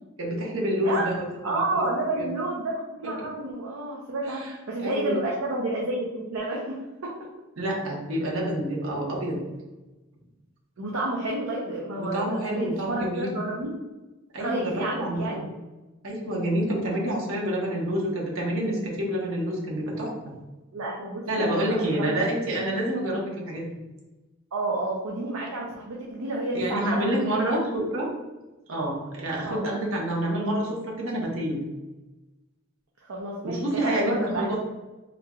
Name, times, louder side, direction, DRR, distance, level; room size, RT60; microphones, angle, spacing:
voice 1, 0.2-1.8 2.1-2.3 3.2-3.3 4.3-4.5 4.8-5.3 7.6-9.4 12.0-13.4 14.3-15.5 16.0-20.1 21.3-23.7 26.5-28.1 28.7-31.6 33.4-34.6, right 1 dB, 70° right, -2 dB, 1.0 m, -28 dB
voice 2, 1.4-6.8 10.8-13.7 14.4-15.4 20.7-22.3 24.5-27.1 27.5-27.9 29.4-29.6 33.1-34.6, right 2 dB, 90° right, -3 dB, 0.6 m, -30 dB
3.6 x 3.3 x 2.3 m, 1.1 s
head